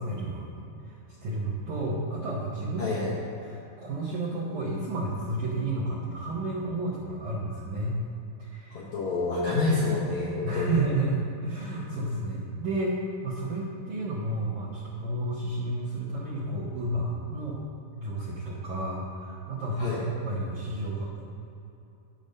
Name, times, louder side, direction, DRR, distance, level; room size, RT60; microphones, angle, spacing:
voice 1, 0.0-2.9 3.4-8.0 8.4-8.8 10.4-17.6 18.0-21.2, right 2 dB, 70° right, -5 dB, 1.9 m, -31 dB
voice 2, 2.8-3.1 8.7-10.8 19.8-20.1, left 3 dB, 90° left, -5 dB, 1.6 m, -28 dB
11.0 x 7.0 x 5.3 m, 2.8 s
omnidirectional pair, 5.0 m